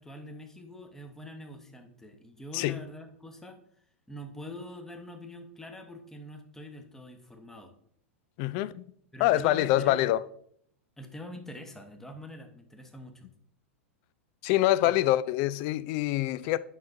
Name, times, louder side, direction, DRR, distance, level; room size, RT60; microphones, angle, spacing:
voice 1, 0.0-3.6 4.1-7.7 9.1-10.0 11.0-13.3 14.8-15.0, left 1 dB, 5° left, 1.0 m, -44 dB
voice 2, 8.4-8.8 9.2-10.2 14.4-16.6, left 15 dB, 45° left, 0.4 m, -25 dB
9.3 x 5.8 x 2.6 m
hypercardioid pair, 100°, 7 cm